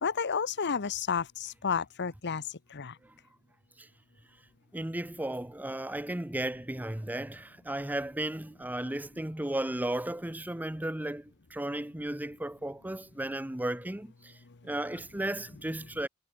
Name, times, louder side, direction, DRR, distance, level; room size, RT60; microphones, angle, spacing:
voice 1, 0.0-2.4 2.7-2.9, left 6 dB, 50° left, 0.9 m, -31 dB
voice 2, 4.7-14.4 14.6-16.1, right 1 dB, 10° right, 0.7 m, -35 dB
head